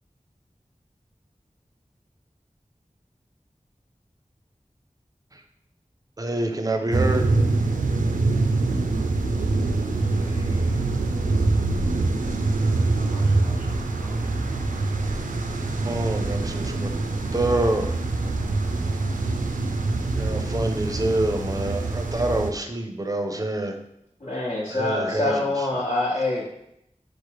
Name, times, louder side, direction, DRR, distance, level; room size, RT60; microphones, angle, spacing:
voice 1, 6.2-7.3 15.8-16.9 17.3-17.9 20.1-23.8 24.7-25.7, right 1 dB, 25° right, 5 dB, 0.5 m, -26 dB
sound 1, 6.9-22.5, right 3 dB, 90° right, 0.4 m, -24 dB
voice 2, 10.0-10.9 12.9-14.2, left 1 dB, 45° left, -5 dB, 0.7 m, -43 dB
voice 3, 24.2-26.5, left 2 dB, 65° left, -8 dB, 1.0 m, -25 dB
4.7 x 2.0 x 4.6 m, 0.79 s
wide cardioid pair, 55°, 13 cm